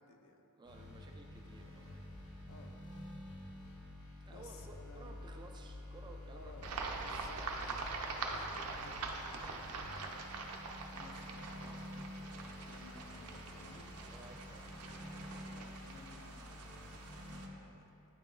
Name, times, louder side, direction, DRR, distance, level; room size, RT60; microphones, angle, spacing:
voice 1, 0.0-0.4 2.5-2.8 4.3-5.3 6.3-7.4 8.2-9.3 9.8-10.6 10.9-13.9 15.4-17.9, left 3 dB, 65° left, 4 dB, 0.5 m, -58 dB
sound 1, 0.6-17.5, left 1 dB, 80° left, 1.0 m, -49 dB
voice 2, 0.6-2.3 4.3-7.4 14.1-14.9, right 2 dB, 20° right, 2 dB, 0.3 m, -56 dB
sound 2, 6.6-17.5, right 4 dB, 85° right, 0.5 m, -44 dB
8.8 x 2.9 x 3.7 m, 2.7 s
head